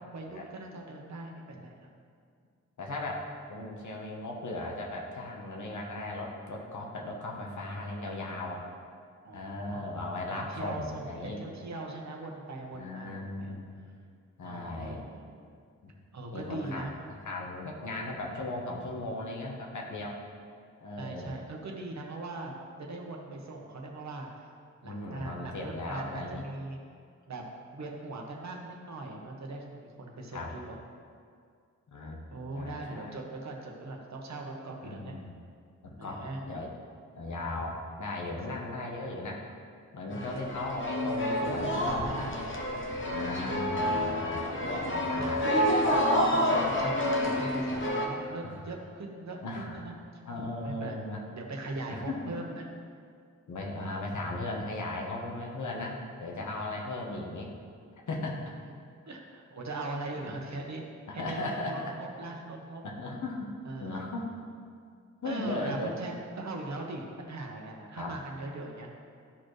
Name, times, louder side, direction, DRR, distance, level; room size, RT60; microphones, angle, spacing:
voice 1, 0.1-1.9 9.2-10.0 10.3-13.6 14.4-15.3 16.1-16.9 21.0-24.3 24.8-26.8 27.3-30.8 32.3-35.2 36.0-36.4 40.1-40.5 41.4-42.4 42.9-43.6 45.0-45.3 46.0-49.9 50.6-51.0 51.3-52.7 59.1-60.8 61.1-62.8 63.6-64.0 65.2-68.9, right 2 dB, 70° right, 0 dB, 1.1 m, -40 dB
voice 2, 2.8-8.7 9.3-11.4 12.7-13.7 14.4-15.0 15.8-15.9 16.3-16.8 17.2-20.2 20.8-21.4 24.8-26.4 30.3-30.5 31.9-32.2 32.5-33.2 34.8-35.4 35.8-36.7 37.1-39.5 39.9-42.5 43.1-44.5 44.8-45.6 48.2-48.5 49.4-49.8 50.2-51.2 51.9-52.3 53.5-57.5 58.1-58.5 60.2-60.4 61.1-61.9 62.8-63.5 63.8-64.3 65.2-65.9 68.0-68.1, left 2 dB, 80° left, -1 dB, 1.2 m, -37 dB
sound 1, 40.1-48.0, equal, 40° left, 0.8 m, -28 dB
12.5 x 4.3 x 3.2 m, 2.2 s
wide cardioid pair, 160°, 29 cm